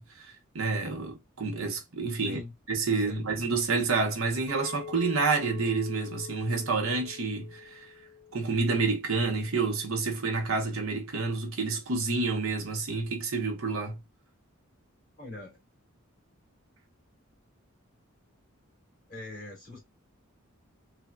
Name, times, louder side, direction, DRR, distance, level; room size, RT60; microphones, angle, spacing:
voice 1, 0.0-2.4 2.7-7.8 8.3-14.0, right 4 dB, 75° right, 0.8 m, -29 dB
voice 2, 2.9-3.3 15.2-15.6 19.1-19.8, left 2 dB, 40° left, 1.8 m, -42 dB
Chink clink, 4.5-9.7, left 5 dB, 15° left, 0.9 m, -45 dB
3.3 x 2.1 x 2.3 m
head